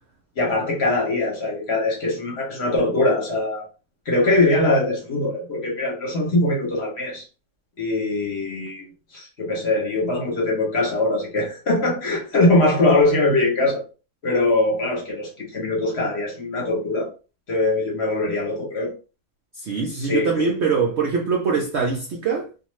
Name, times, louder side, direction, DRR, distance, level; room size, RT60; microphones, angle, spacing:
voice 1, 0.4-3.7 4.1-7.2 7.8-8.9 9.1-13.8 14.2-17.1 17.5-18.9 19.9-20.5, left 2 dB, 50° left, 1.0 m, -22 dB
voice 2, 19.6-22.7, right 5 dB, 70° right, 0.6 m, -23 dB
2.5 x 2.4 x 3.0 m
omnidirectional pair, 1.7 m